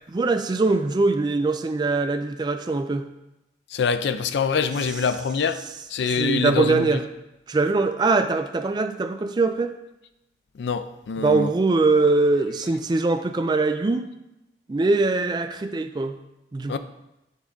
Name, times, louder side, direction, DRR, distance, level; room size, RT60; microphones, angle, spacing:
voice 1, 0.1-3.1 6.2-7.0 7.5-9.7 11.2-14.1 14.7-16.2 16.5-16.8, right 3 dB, 25° right, 0.3 m, -22 dB
voice 2, 3.7-5.6 5.9-7.0 10.5-11.5 16.7-16.8, left 5 dB, 75° left, 0.4 m, -25 dB
8.2 x 3.6 x 3.8 m
head